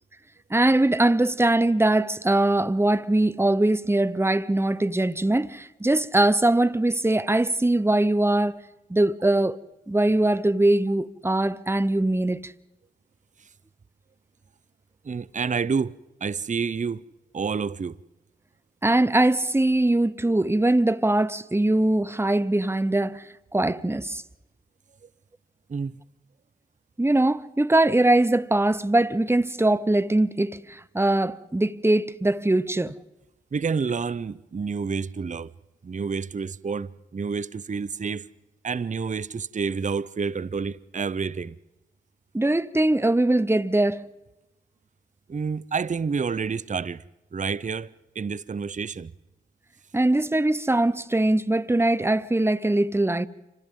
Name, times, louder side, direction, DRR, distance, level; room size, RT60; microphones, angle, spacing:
voice 1, 0.5-8.6 8.9-9.6 9.9-12.5 18.8-24.2 27.0-32.9 42.3-44.0 49.9-53.3, right 1 dB, 10° right, 0.9 m, -22 dB
voice 2, 15.0-17.0 17.3-18.0 25.0-25.1 25.7-26.0 33.5-35.5 35.8-38.3 38.6-41.6 45.3-47.0 47.3-49.1, right 5 dB, 35° right, 0.6 m, -29 dB
30.0 x 26.5 x 3.8 m
supercardioid pair, 40°, 21 cm